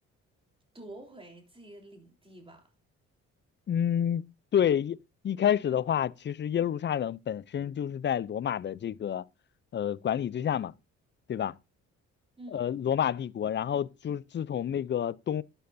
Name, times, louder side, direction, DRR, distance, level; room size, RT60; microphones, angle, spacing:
voice 1, 0.7-2.7 12.4-12.7, right 1 dB, 20° right, 3.8 m, -48 dB
voice 2, 3.7-5.0 5.2-9.2 9.7-10.7 11.3-11.5 12.5-15.4, left 9 dB, 40° left, 0.5 m, -29 dB
12.0 x 9.1 x 2.6 m
cardioid pair, 90°, 30 cm